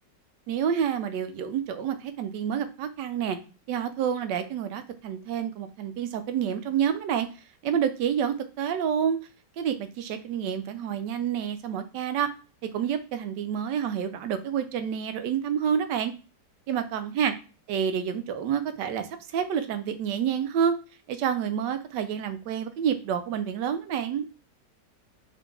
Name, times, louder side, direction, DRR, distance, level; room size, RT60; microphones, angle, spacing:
voice 1, 0.5-3.4 3.7-7.3 7.6-9.2 9.6-12.3 12.7-16.1 16.7-17.3 17.7-19.1 19.3-20.7 21.1-24.2, right 8 dB, 80° right, 9 dB, 1.2 m, -28 dB
3.8 x 2.7 x 3.5 m, 0.35 s
omnidirectional pair, 1.9 m